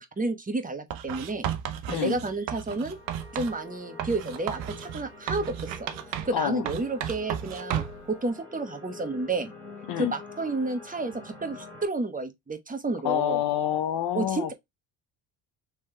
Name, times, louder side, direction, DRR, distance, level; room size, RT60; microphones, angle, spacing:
voice 1, 0.0-1.5 1.9-3.0 3.3-5.9 6.2-9.5 10.0-13.4 14.1-14.5, right 2 dB, 15° right, 1.1 m, -31 dB
Writing, 0.9-3.6 4.0-6.4 6.7-8.1, right 10 dB, 80° right, 0.9 m, -34 dB
voice 2, 1.9-2.2 6.3-6.6 9.9-10.1 13.0-14.5, left 11 dB, 60° left, 0.7 m, -27 dB
sound 1, 2.9-11.9, left 4 dB, 5° left, 2.6 m, -46 dB
3.7 x 3.2 x 4.3 m
supercardioid pair, 75°, 46 cm